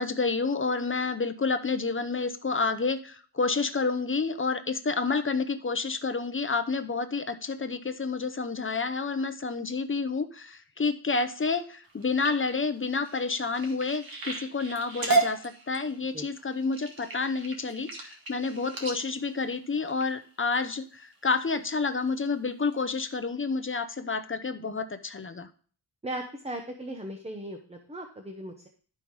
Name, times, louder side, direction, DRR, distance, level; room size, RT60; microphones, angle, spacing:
voice 1, 0.0-25.5, left 4 dB, 30° left, 10 dB, 0.6 m, -29 dB
sound 1, 11.8-20.5 21.1-21.5 21.9-22.3 22.7-22.8 23.1-23.2, right 3 dB, 55° right, 1.9 m, -34 dB
voice 2, 26.0-28.7, right 1 dB, 15° right, 4 dB, 0.8 m, -37 dB
12.0 x 5.6 x 4.6 m, 0.43 s
wide cardioid pair, 165°, 43 cm